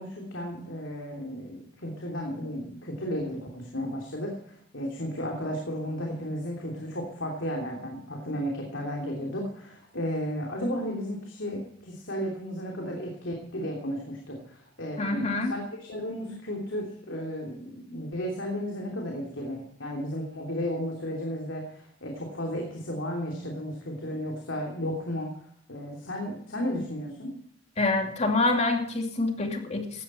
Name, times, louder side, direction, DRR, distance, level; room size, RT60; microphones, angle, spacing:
voice 1, 0.0-25.3 25.7-27.3, equal, 90° left, 0 dB, 3.0 m, -34 dB
voice 2, 15.0-15.5 27.8-30.0, left 2 dB, 35° left, 3 dB, 2.6 m, -26 dB
17.0 x 12.5 x 4.4 m, 0.68 s
head